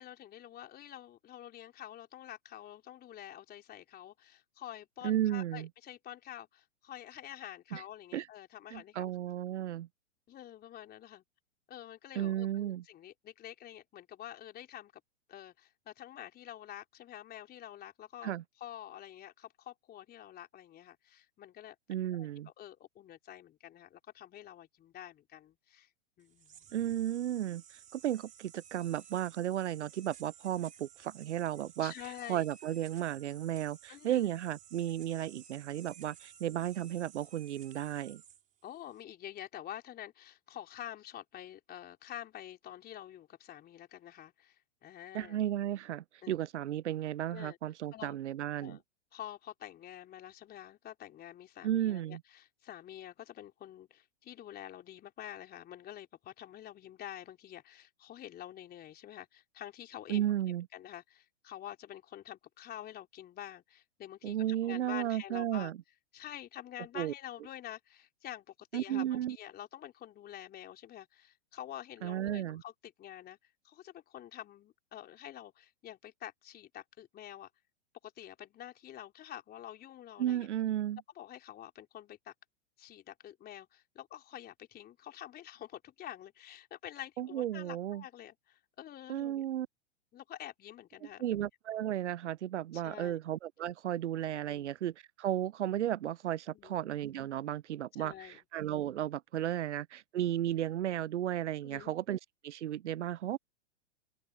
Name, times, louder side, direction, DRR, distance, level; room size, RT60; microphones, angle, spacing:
voice 1, 0.0-9.1 10.3-11.2 11.7-14.9 15.3-18.3 18.6-25.9 26.2-26.6 29.8-29.9 31.8-32.4 33.9-34.3 36.4-36.6 38.6-45.4 46.2-46.4 47.3-47.6 47.9-48.2 48.6-48.8 49.1-60.2 60.7-64.4 64.6-65.7 66.1-73.4 73.6-77.5 78.0-80.5 81.2-82.3 82.8-89.4 90.1-91.2 92.7-93.2 94.5-94.7 96.5-96.8 98.0-98.4 101.6-101.9, left 11 dB, 25° left, 4.1 m, -48 dB
voice 2, 5.0-5.7 7.7-7.8 8.1-8.3 8.7-9.9 12.2-12.8 18.2-18.4 21.9-22.5 26.7-27.6 27.9-31.9 32.3-38.2 45.1-48.8 51.6-52.2 60.1-60.7 64.2-65.8 66.9-67.1 68.7-69.4 72.0-72.6 80.2-81.0 87.2-88.0 89.1-89.7 91.0-103.4, right 12 dB, 80° right, 0.6 m, -34 dB
sound 1, 26.2-39.0, right 8 dB, 20° right, 4.2 m, -56 dB
open air
hypercardioid pair, 110°, 34 cm